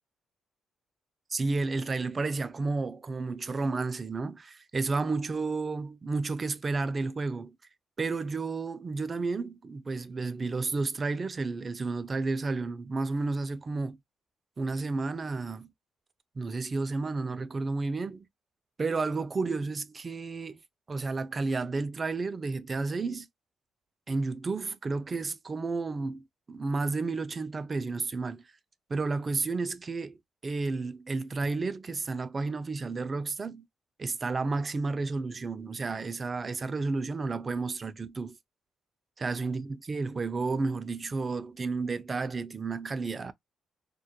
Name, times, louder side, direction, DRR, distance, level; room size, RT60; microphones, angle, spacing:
voice 1, 1.3-7.5 8.0-14.0 14.6-15.7 16.4-18.2 18.8-20.6 20.9-23.3 24.1-28.4 28.9-30.2 30.4-33.7 34.0-38.4 39.2-43.3, right 3 dB, 35° right, 0.3 m, -31 dB
2.2 x 2.1 x 2.7 m
cardioid pair, 80°, 0 cm